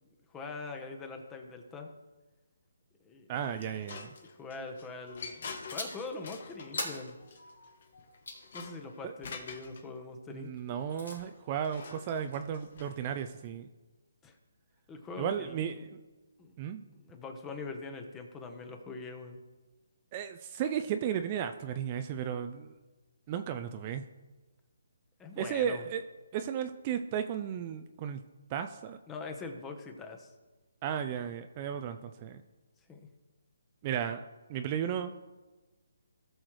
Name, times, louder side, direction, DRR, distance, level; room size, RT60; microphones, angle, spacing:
voice 1, 0.0-1.9 3.0-3.3 4.2-7.1 8.5-10.5 14.2-14.3 14.9-15.9 16.4-16.5 16.9-19.4 25.2-25.9 29.1-30.3 32.9-33.0, left 3 dB, 15° left, 5 dB, 1.0 m, -43 dB
sound 1, 3.3-9.8 11.1-13.5, left 5 dB, 50° left, 1.3 m, -47 dB
voice 2, 3.3-4.1 9.0-9.1 10.3-13.7 15.2-15.9 16.6-16.9 20.1-22.7 23.3-24.0 25.4-26.0 26.3-28.2 28.5-29.0 30.8-32.4 33.8-35.1, right 8 dB, 30° right, 8 dB, 0.4 m, -34 dB
sound 2, 5.7-6.1 6.8-8.5 10.6-11.2, left 2 dB, 85° left, 3.1 m, -40 dB
17.5 x 6.3 x 3.2 m, 1.2 s
hypercardioid pair, 155°, 0 cm